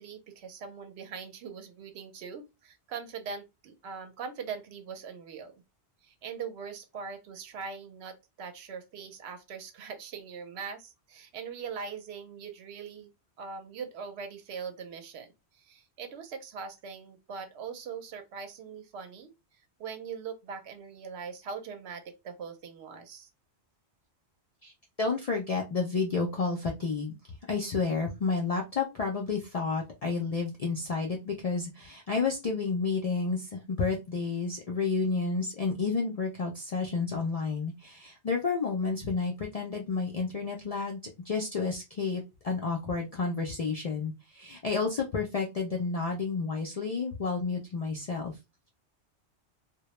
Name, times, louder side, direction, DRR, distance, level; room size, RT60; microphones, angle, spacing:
voice 1, 0.0-5.5 6.0-13.1 13.4-19.3 19.8-23.3, right 6 dB, 75° right, 0.8 m, -41 dB
voice 2, 25.0-48.4, left 4 dB, 60° left, 0.4 m, -31 dB
2.2 x 2.1 x 2.9 m
omnidirectional pair, 1.2 m